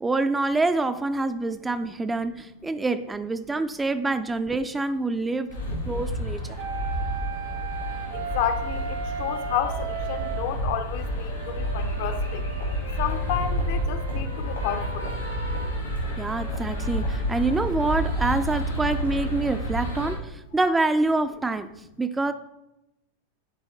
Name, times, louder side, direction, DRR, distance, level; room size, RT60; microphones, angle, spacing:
voice 1, 0.0-5.5 5.9-6.6 16.2-21.7 22.0-22.3, right 2 dB, 10° right, 0.3 m, -26 dB
sound 1, 5.5-20.2, equal, 80° left, 2.2 m, -29 dB
sound 2, 6.5-10.5 11.3-15.8, right 6 dB, 60° right, 0.9 m, -36 dB
voice 2, 8.1-12.4 13.0-15.1, left 9 dB, 50° left, 0.6 m, -31 dB
10.5 x 3.6 x 3.5 m
figure-of-eight pair, 90°, 0 cm